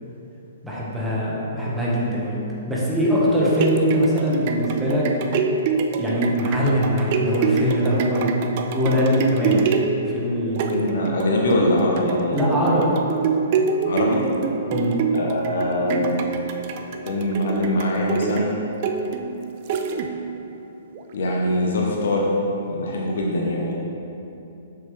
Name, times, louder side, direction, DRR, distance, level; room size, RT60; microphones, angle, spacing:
voice 1, 0.6-2.4 2.7-5.0 6.0-8.4 8.7-9.7 10.0-11.0 11.4-11.5 12.3-13.0 14.7-15.0, equal, 5° right, -7 dB, 1.6 m, -22 dB
sound 1, 3.3-20.4 20.9-21.0, right 5 dB, 45° right, 0.5 m, -26 dB
voice 2, 10.7-12.5 13.8-14.2 15.1-16.2 17.0-18.5 21.1-22.3 22.7-23.7, left 1 dB, 60° left, -2 dB, 1.1 m, -23 dB
7.1 x 6.3 x 3.5 m, 2.9 s
figure-of-eight pair, 115°, 0 cm